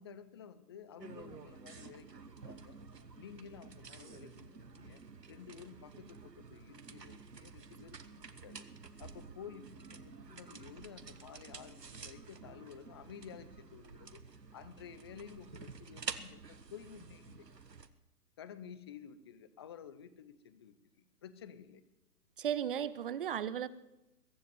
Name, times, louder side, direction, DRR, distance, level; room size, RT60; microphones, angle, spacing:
voice 1, 0.0-2.8 3.2-5.0 5.3-8.7 9.0-14.2 14.5-17.5 18.4-21.8, left 8 dB, 15° left, 14 dB, 0.5 m, -52 dB
sound 1, 1.0-17.9, right 5 dB, 85° right, 1.4 m, -50 dB
voice 2, 22.4-23.7, right 9 dB, 35° right, 17 dB, 0.6 m, -35 dB
22.5 x 8.2 x 7.8 m, 0.93 s
figure-of-eight pair, 125°, 48 cm